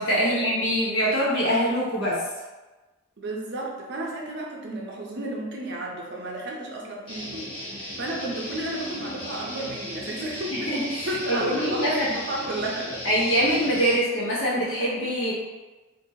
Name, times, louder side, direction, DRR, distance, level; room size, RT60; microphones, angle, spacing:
voice 1, 0.0-2.2 10.5-12.1 13.0-15.3, equal, 65° left, -6 dB, 1.0 m, -24 dB
voice 2, 3.2-10.7 11.0-13.0, right 1 dB, 50° right, -1 dB, 0.5 m, -32 dB
Guitar, 7.1-13.9, left 1 dB, 25° left, 0.9 m, -37 dB
2.9 x 2.5 x 2.7 m, 1.2 s
head